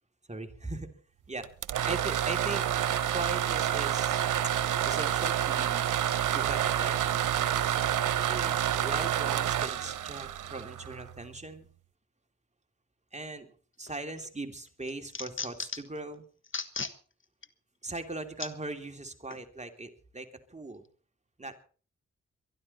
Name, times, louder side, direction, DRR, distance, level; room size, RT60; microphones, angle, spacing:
voice 1, 0.3-0.9 1.3-1.5 1.9-2.6 3.1-4.2 4.8-6.9 8.3-11.7 13.1-13.5 13.8-16.2 17.8-20.8 21.4-21.6, right 2 dB, 20° right, 5 dB, 3.1 m, -39 dB
sound 1, 1.4-11.2, right 10 dB, 85° right, 1.1 m, -28 dB
sound 2, 13.9-14.3 14.7-16.0 16.4-17.0 17.4-17.5 18.4-18.5 19.3-19.4, left 5 dB, 40° left, 1.4 m, -36 dB
23.5 x 12.0 x 4.3 m, 0.40 s
cardioid pair, 55°, 30 cm